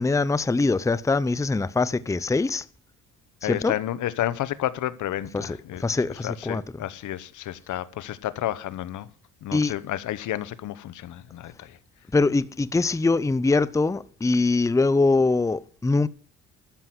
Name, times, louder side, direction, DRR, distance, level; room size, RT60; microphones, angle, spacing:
voice 1, 0.0-2.6 3.4-3.7 5.3-6.6 9.5-9.7 12.1-16.1, left 3 dB, 10° left, 0.6 m, -23 dB
voice 2, 3.4-5.8 6.1-9.1 9.4-11.8, left 13 dB, 75° left, 1.0 m, -31 dB
13.0 x 7.6 x 7.9 m
cardioid pair, 90°, 30 cm